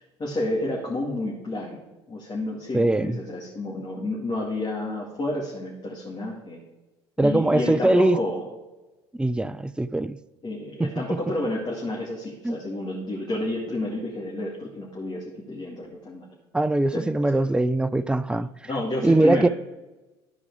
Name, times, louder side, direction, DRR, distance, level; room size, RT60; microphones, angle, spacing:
voice 1, 0.2-1.8 2.1-6.6 7.2-8.4 10.4-16.3 16.9-17.4 18.3-19.5, left 2 dB, 30° left, 2.5 m, -30 dB
voice 2, 2.7-3.2 7.2-8.2 9.2-10.2 10.8-10.9 12.4-12.6 16.5-18.5 19.0-19.5, right 2 dB, 5° right, 0.4 m, -21 dB
12.5 x 4.8 x 4.9 m
hypercardioid pair, 65°, 14 cm